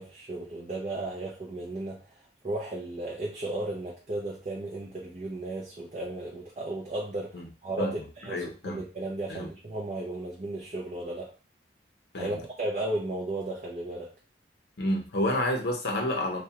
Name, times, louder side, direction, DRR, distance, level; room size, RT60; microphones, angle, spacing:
voice 1, 0.0-11.3 12.2-14.1, right 2 dB, 35° right, -3 dB, 0.4 m, -35 dB
voice 2, 8.3-8.8 9.3-9.5 12.1-12.4 14.8-16.4, left 1 dB, 60° left, 2 dB, 0.6 m, -29 dB
2.3 x 2.1 x 2.7 m, 0.34 s
head